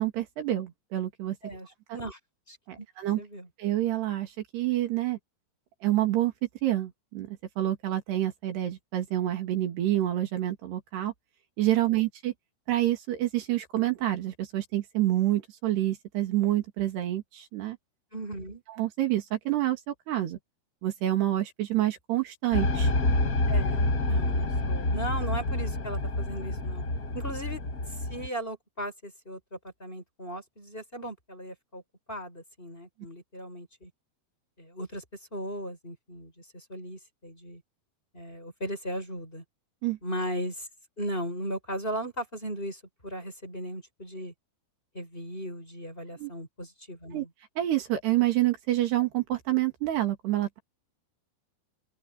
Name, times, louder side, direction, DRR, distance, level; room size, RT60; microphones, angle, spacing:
voice 1, 0.0-1.4 2.7-3.2 3.6-5.2 5.8-6.3 6.6-11.1 11.6-12.3 12.7-17.8 18.8-20.4 20.8-22.9 39.8-40.0 46.2-46.3 47.1-47.3 47.6-50.6, right 14 dB, 75° right, 4.3 m, -28 dB
voice 2, 1.4-2.2 2.5-2.9 3.2-3.5 18.1-18.6 23.5-26.8 27.1-27.6 27.9-31.8 32.1-33.9 34.6-35.0 35.3-37.6 38.1-39.4 40.0-40.7 41.0-44.3 44.9-47.3, equal, 10° left, 5.7 m, -37 dB
sound 1, 22.5-28.3, left 2 dB, 45° left, 1.2 m, -27 dB
open air
omnidirectional pair, 4.9 m